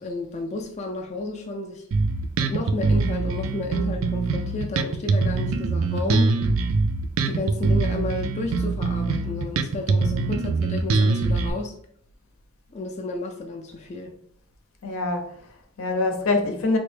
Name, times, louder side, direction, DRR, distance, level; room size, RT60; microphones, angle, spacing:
voice 1, 0.0-1.9 2.4-6.4 7.2-11.7 12.7-14.1, left 2 dB, 35° left, 0.3 m, -32 dB
Bass guitar, 1.9-11.5, right 3 dB, 75° right, 0.3 m, -23 dB
voice 2, 14.8-16.8, left 3 dB, 80° left, 0.6 m, -25 dB
3.3 x 2.1 x 3.2 m
head